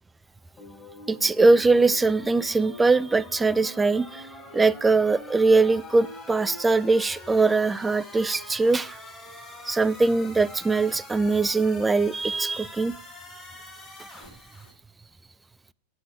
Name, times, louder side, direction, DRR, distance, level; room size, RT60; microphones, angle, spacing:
sound 1, 0.6-14.7, left 2 dB, 15° left, 5.2 m, -44 dB
voice 1, 1.1-4.3 4.5-9.0 9.6-13.0, right 3 dB, 10° right, 0.4 m, -21 dB
8.5 x 7.5 x 5.9 m
figure-of-eight pair, 90°, 0 cm